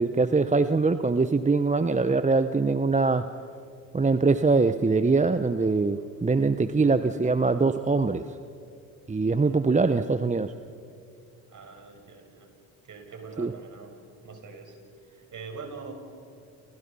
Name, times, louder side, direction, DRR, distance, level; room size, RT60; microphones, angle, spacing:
voice 1, 0.0-3.3 3.9-8.2 9.1-10.5 13.4-13.5, right 4 dB, 20° right, 11 dB, 1.0 m, -23 dB
voice 2, 9.4-10.0 11.5-12.5 12.9-14.7 15.3-15.9, right 4 dB, 50° right, 4 dB, 6.1 m, -43 dB
29.5 x 28.5 x 5.6 m, 2.4 s
hypercardioid pair, 60°, 39 cm